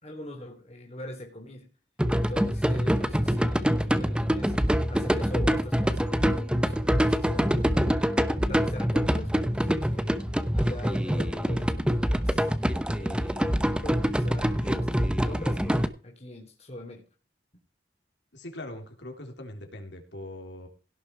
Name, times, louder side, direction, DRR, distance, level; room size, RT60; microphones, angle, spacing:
voice 1, 0.0-1.7 2.1-10.2 10.5-12.5 13.0-17.1, left 1 dB, 40° left, 2 dB, 3.2 m, -42 dB
sound 1, 2.0-15.9, equal, 5° right, 0.8 m, -25 dB
voice 2, 18.3-20.7, left 1 dB, 85° left, 3 dB, 3.7 m, -41 dB
17.0 x 6.8 x 4.7 m, 0.38 s
head